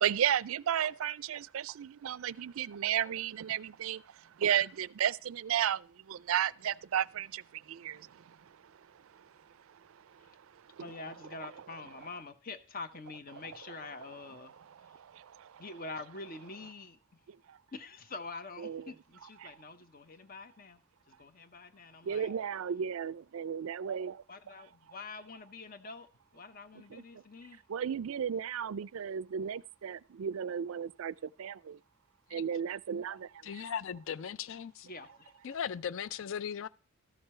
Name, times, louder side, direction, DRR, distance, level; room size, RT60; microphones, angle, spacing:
voice 1, 0.0-4.0 4.4-5.8 6.1-7.4 7.7-8.0 10.8-11.0 18.6-18.9 22.1-24.2 27.7-31.1 31.4-31.8 32.3-33.3, right 9 dB, 65° right, 0.4 m, -33 dB
voice 2, 10.8-14.5 15.6-17.0 17.7-20.8 21.1-22.3 24.3-27.6 34.8-35.3, left 3 dB, 40° left, 0.9 m, -46 dB
voice 3, 33.4-34.9 35.4-36.7, left 8 dB, 60° left, 0.4 m, -38 dB
13.5 x 6.7 x 4.3 m
head